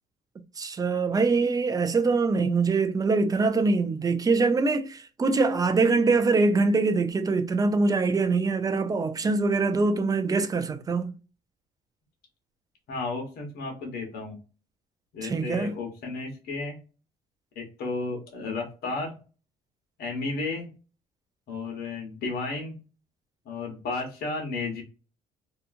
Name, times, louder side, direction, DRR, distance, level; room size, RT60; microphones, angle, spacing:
voice 1, 0.6-11.1 15.2-15.7, right 3 dB, 20° right, 0.4 m, -24 dB
voice 2, 12.9-14.4 15.1-16.8 17.5-19.2 20.0-20.6 21.5-22.8 23.4-24.8, left 3 dB, 65° left, 1.0 m, -33 dB
2.8 x 2.3 x 2.5 m
cardioid pair, 110°, 17 cm